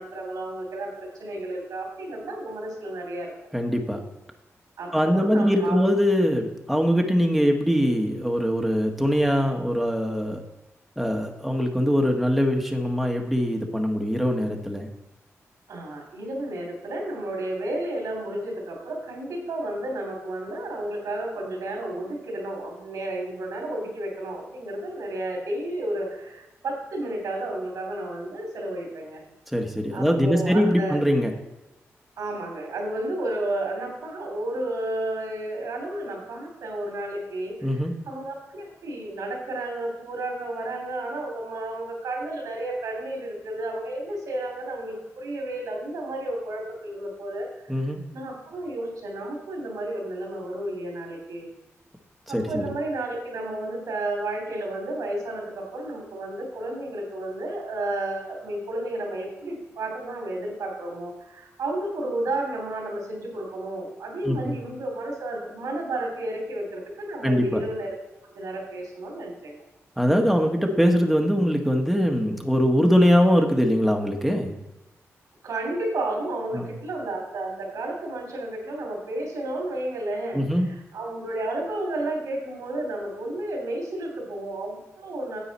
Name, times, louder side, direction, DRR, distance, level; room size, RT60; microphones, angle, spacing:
voice 1, 0.0-3.3 4.8-5.9 15.7-29.2 29.9-31.0 32.2-37.8 38.0-51.5 52.3-67.9 68.3-69.6 75.4-85.4, right 1 dB, 85° right, 1 dB, 3.0 m, -32 dB
voice 2, 3.5-4.0 4.9-10.4 11.0-14.9 29.5-31.3 37.6-37.9 47.7-48.0 52.3-52.7 64.2-64.5 67.2-67.6 70.0-74.6 76.5-76.7 80.3-80.7, equal, ahead, 2 dB, 1.4 m, -22 dB
9.7 x 7.6 x 4.2 m, 0.97 s
cardioid pair, 65°, 5 cm